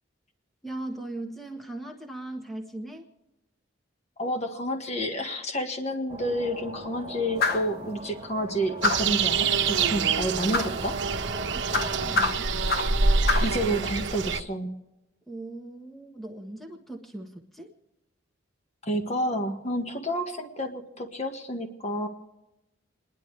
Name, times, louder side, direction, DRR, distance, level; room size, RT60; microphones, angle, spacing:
voice 1, 0.6-3.1 11.5-12.6 15.3-17.7, right 2 dB, ahead, 2 dB, 1.3 m, -39 dB
voice 2, 4.2-11.0 13.4-14.7 18.8-22.1, equal, 35° left, 5 dB, 1.5 m, -30 dB
sound 1, 6.1-12.2, right 1 dB, 25° right, 1.0 m, -40 dB
sound 2, 7.4-7.7 8.8-9.2 10.5-10.8 11.7-13.0 13.3-13.6, left 4 dB, 50° left, 0.9 m, -26 dB
sound 3, 8.8-14.4, right 4 dB, 65° right, 1.2 m, -26 dB
29.0 x 11.0 x 3.3 m, 0.99 s
head